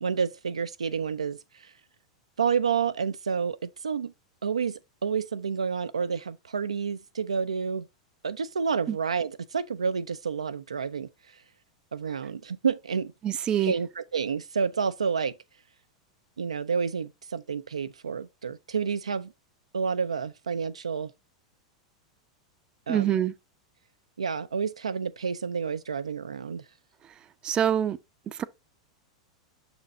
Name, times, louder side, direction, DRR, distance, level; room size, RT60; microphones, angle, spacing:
voice 1, 0.0-1.7 2.4-4.1 4.4-7.9 8.2-11.1 11.9-13.1 13.6-15.3 16.4-19.3 19.7-21.1 22.9-23.2 24.2-26.6, right 6 dB, 75° right, 0.4 m, -29 dB
voice 2, 13.2-13.7 22.9-23.3 27.4-28.0 28.3-28.4, right 10 dB, 25° right, 0.5 m, -25 dB
6.4 x 4.3 x 3.8 m
figure-of-eight pair, 90°, 3 cm